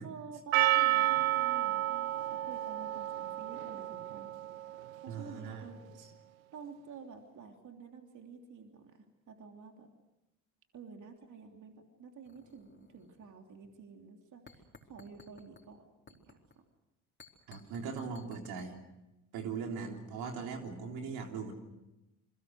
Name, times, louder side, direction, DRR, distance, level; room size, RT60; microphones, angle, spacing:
voice 1, 0.0-4.4 5.0-5.8 6.5-9.9 10.7-16.6, right 5 dB, 50° right, 3 dB, 3.2 m, -50 dB
Percussion, 0.5-5.1, right 14 dB, 85° right, 0.8 m, -31 dB
voice 2, 5.1-5.6 17.5-18.8 19.3-21.5, right 5 dB, 65° right, 3 dB, 3.6 m, -40 dB
sound 1, 12.2-13.4 13.6-13.8 14.5-15.7 16.1-16.5 17.2-18.7, left 4 dB, 25° left, 4.3 m, -58 dB
28.0 x 22.5 x 6.5 m, 0.96 s
hypercardioid pair, 65°, 40 cm